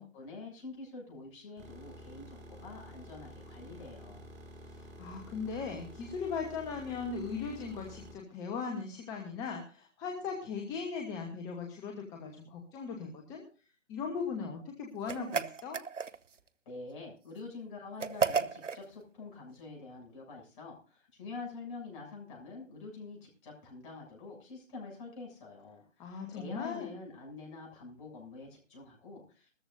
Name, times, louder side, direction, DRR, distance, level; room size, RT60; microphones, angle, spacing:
voice 1, 0.0-4.3 16.7-29.5, left 3 dB, 25° left, -1 dB, 7.3 m, -46 dB
sound 1, 1.6-8.1, equal, 20° right, 5.2 m, -50 dB
voice 2, 4.6-13.4 13.9-15.8 26.0-27.0, left 5 dB, 10° left, 2 dB, 1.0 m, -38 dB
sound 2, 15.1-16.4 18.0-18.8, right 6 dB, 70° right, 1.0 m, -32 dB
20.5 x 14.0 x 2.6 m, 0.35 s
figure-of-eight pair, 145°, 38 cm